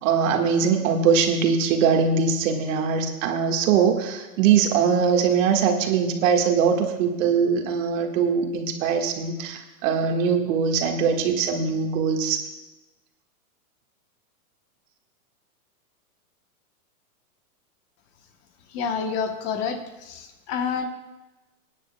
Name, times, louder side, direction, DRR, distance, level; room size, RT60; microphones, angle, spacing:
voice 1, 0.0-12.4, right 6 dB, 55° right, 3 dB, 1.7 m, -22 dB
voice 2, 18.7-20.9, left 6 dB, 35° left, 6 dB, 1.0 m, -28 dB
25.0 x 9.8 x 2.2 m, 1.1 s
hypercardioid pair, 130°, 45 cm